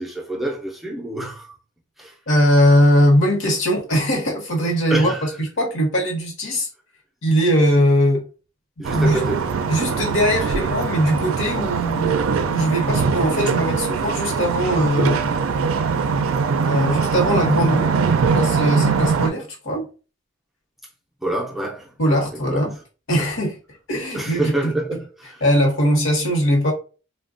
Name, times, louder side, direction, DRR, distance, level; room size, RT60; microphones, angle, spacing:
voice 1, 0.0-1.5 2.0-2.1 4.9-5.3 8.8-9.5 21.2-22.6 24.1-25.4, right 1 dB, ahead, 0.4 m, -27 dB
voice 2, 2.3-6.7 7.2-8.2 8.9-9.2 9.7-12.2 12.5-15.3 16.7-18.0 18.3-19.9 22.0-22.8 23.1-23.6 23.9-24.7 25.4-26.7, equal, 65° left, 0.9 m, -20 dB
sound 1, 8.8-19.3, right 5 dB, 75° right, 0.4 m, -22 dB
3.3 x 2.2 x 2.5 m
head